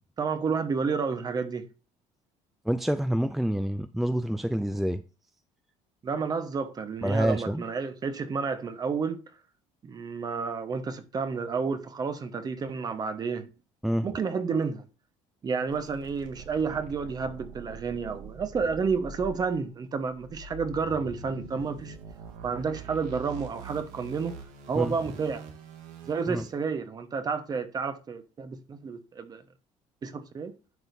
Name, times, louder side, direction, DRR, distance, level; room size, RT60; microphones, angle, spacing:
voice 1, 0.2-1.7 6.0-9.2 9.8-13.5 14.0-14.8 15.4-21.9 22.4-24.4 24.7-25.5 26.0-29.4 30.0-30.5, right 5 dB, 30° right, 1.2 m, -30 dB
voice 2, 2.7-5.0 7.0-7.6 13.8-14.1 24.7-24.9 26.3-26.4, equal, ahead, 0.4 m, -27 dB
sound 1, 15.7-26.5, right 5 dB, 80° right, 1.9 m, -44 dB
10.5 x 6.4 x 2.7 m
cardioid pair, 130°, 13 cm